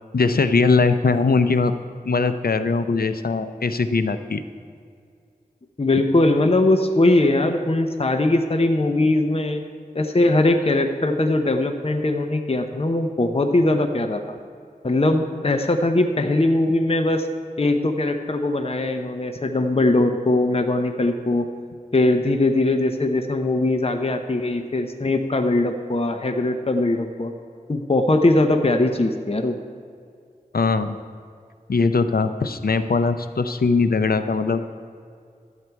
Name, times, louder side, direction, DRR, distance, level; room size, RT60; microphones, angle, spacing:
voice 1, 0.1-1.7 2.0-4.4 30.5-31.0 31.7-34.7, left 4 dB, 80° left, 10 dB, 0.6 m, -20 dB
voice 2, 5.8-9.6 9.9-14.4 14.8-17.3 17.6-21.5 21.9-27.3 27.7-29.6, left 2 dB, 40° left, 5 dB, 0.7 m, -20 dB
12.0 x 8.3 x 4.6 m, 2.3 s
wide cardioid pair, 45°, 15 cm